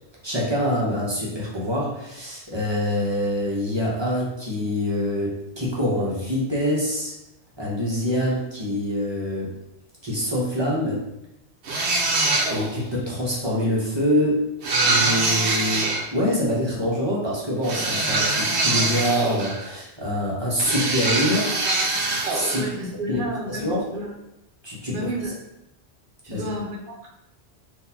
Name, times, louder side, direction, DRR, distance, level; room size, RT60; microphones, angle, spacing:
voice 1, 0.2-7.1 7.6-9.5 10.0-11.0 12.1-14.4 14.8-21.6 22.3-22.7 23.1-23.2 23.5-23.8 24.6-25.0 26.3-26.4, equal, 25° right, -5 dB, 0.8 m, -25 dB
sound 1, 11.6-12.8 14.6-16.0 17.6-19.7 20.6-22.7, right 2 dB, 75° right, 1.0 m, -23 dB
voice 2, 22.5-23.6 23.9-24.1 24.9-25.4 26.2-27.1, equal, 55° right, -3 dB, 0.9 m, -31 dB
3.9 x 2.6 x 2.8 m, 0.87 s
omnidirectional pair, 1.2 m